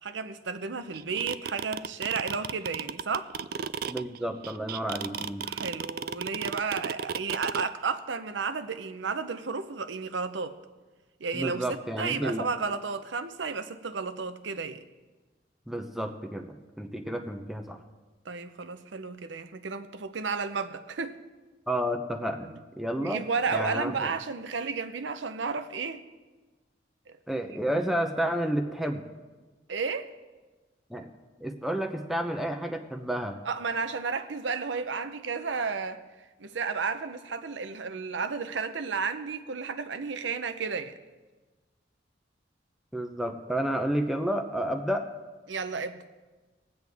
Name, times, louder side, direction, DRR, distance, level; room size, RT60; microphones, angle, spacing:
voice 1, 0.0-3.3 5.4-10.6 11.2-11.6 12.0-14.8 18.2-21.2 22.4-22.6 23.0-26.0 27.1-27.2 29.7-30.1 33.5-36.0 36.4-41.0 45.5-46.1, right 5 dB, 90° right, 0.7 m, -32 dB
sound 1, 0.9-7.7, right 7 dB, 55° right, 0.3 m, -33 dB
voice 2, 3.9-5.4 11.3-12.5 15.7-17.8 21.7-22.5 22.8-23.2 23.5-24.1 27.3-29.0 30.9-31.1 31.4-33.4 42.9-45.1, right 1 dB, ahead, 0.7 m, -31 dB
21.0 x 8.0 x 3.5 m
head